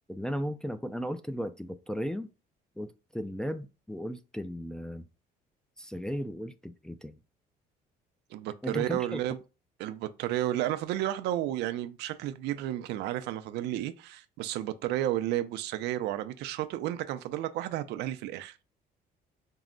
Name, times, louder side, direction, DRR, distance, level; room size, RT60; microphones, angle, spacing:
voice 1, 0.1-2.3 2.8-5.0 5.8-7.2 8.6-9.2, equal, 5° left, 0.3 m, -36 dB
voice 2, 8.3-9.4 9.8-18.6, right 13 dB, 85° right, 0.5 m, -32 dB
4.5 x 2.1 x 3.7 m
cardioid pair, 110°, 17 cm